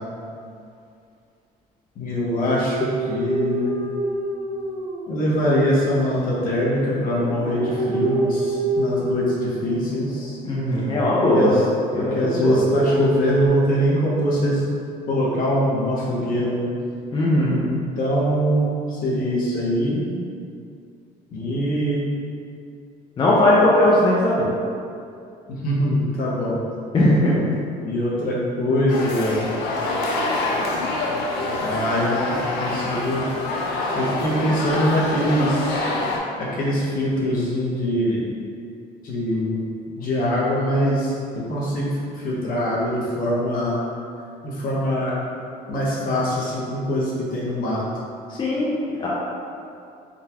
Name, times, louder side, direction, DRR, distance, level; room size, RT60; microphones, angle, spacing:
voice 1, 2.0-3.8 5.1-10.4 11.3-11.6 12.0-14.6 15.1-16.7 17.6-20.0 21.3-22.1 25.5-26.6 27.8-29.5 31.6-33.2 33.9-35.8 36.4-38.2 39.0-39.7 40.0-43.8 44.4-45.1 45.7-47.8, equal, 55° left, -5 dB, 0.9 m, -23 dB
sound 1, 2.5-5.5 6.0-10.2 10.7-11.6 11.9-13.5, right 1 dB, 70° right, 0.6 m, -27 dB
voice 2, 10.4-11.5 11.9-12.6 17.1-17.6 23.2-24.5 26.9-27.3 48.4-49.1, left 1 dB, 30° left, -7 dB, 0.5 m, -19 dB
sound 2, 28.9-36.2, left 2 dB, 90° left, 0.5 m, -26 dB
3.8 x 2.3 x 2.8 m, 2.5 s
cardioid pair, 110°, 17 cm